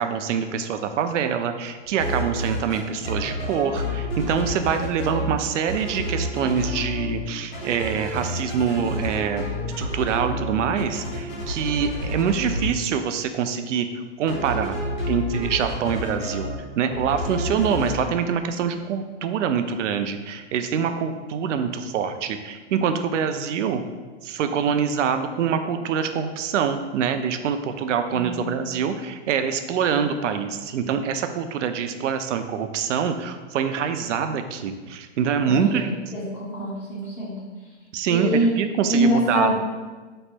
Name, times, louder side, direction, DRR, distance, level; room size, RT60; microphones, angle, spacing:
voice 1, 0.0-9.4 9.8-13.9 14.2-14.7 15.1-16.5 16.8-23.8 24.2-35.9 37.9-39.5, right 7 dB, 80° right, 8 dB, 0.5 m, -25 dB
sound 1, 1.9-5.3 5.7-7.2 7.5-12.7 14.3-16.6 16.9-18.1, left 1 dB, 55° left, 1.4 m, -29 dB
voice 2, 28.1-28.4 35.5-35.8 36.1-37.4 38.1-38.5 38.9-39.5, right 1 dB, 5° left, -8 dB, 0.5 m, -24 dB
3.1 x 2.2 x 4.3 m, 1.3 s
hypercardioid pair, 150°, 36 cm